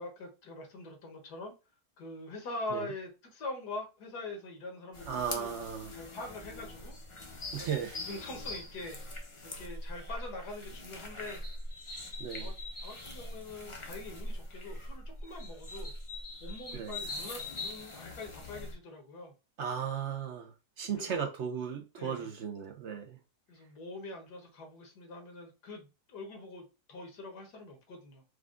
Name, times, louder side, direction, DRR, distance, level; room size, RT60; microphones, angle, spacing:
voice 1, 0.0-1.5 2.0-5.5 5.9-7.0 7.6-7.8 8.1-9.0 9.4-11.4 12.4-12.5 12.8-15.9 16.4-19.3 20.9-21.2 22.0-22.3 23.5-28.2, left 2 dB, 75° left, 1.7 m, -43 dB
sound 1, 4.9-18.7, left 2 dB, 30° left, 0.5 m, -42 dB
voice 2, 5.1-5.9 7.5-8.0 12.2-12.5 16.7-17.0 19.6-23.2, right 7 dB, 60° right, 0.8 m, -36 dB
4.9 x 2.3 x 3.6 m
omnidirectional pair, 1.7 m